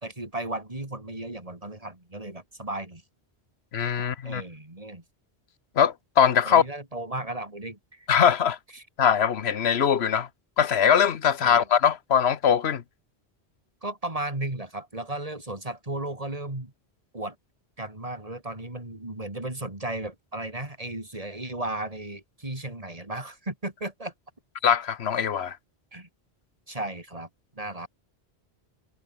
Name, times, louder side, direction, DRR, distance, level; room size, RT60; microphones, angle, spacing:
voice 1, 0.0-3.0 4.2-5.0 6.5-8.1 8.7-8.8 11.4-11.7 13.8-16.7 17.1-17.4 17.8-24.1 25.9-26.1 26.7-27.3 27.6-27.9, right 2 dB, 35° right, 3.5 m, -35 dB
voice 2, 3.7-4.4 5.8-6.6 8.1-8.6 9.0-10.3 10.6-12.8 24.6-25.6, left 8 dB, 75° left, 1.3 m, -21 dB
omnidirectional pair, 1.1 m